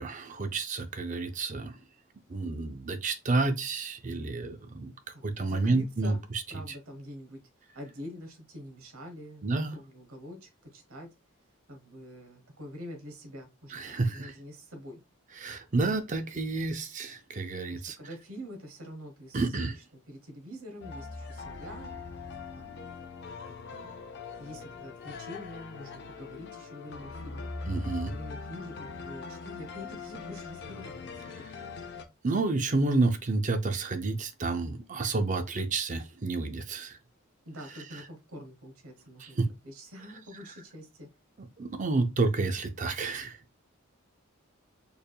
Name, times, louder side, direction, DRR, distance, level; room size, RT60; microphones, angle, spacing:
voice 1, 0.0-1.7 2.3-4.9 5.2-6.2 9.4-9.7 13.7-14.3 15.4-18.0 19.3-19.8 27.7-28.1 32.2-37.0 39.2-39.5 41.6-43.4, right 3 dB, 35° right, 0.5 m, -30 dB
voice 2, 5.1-6.2 6.5-7.4 7.7-11.1 11.7-15.0 17.7-21.9 22.6-22.9 23.5-23.9 24.4-27.5 28.0-31.2 37.5-41.1, equal, 85° right, 1.1 m, -46 dB
sound 1, 20.8-32.0, left 4 dB, 50° left, 0.5 m, -41 dB
4.4 x 3.4 x 2.3 m
head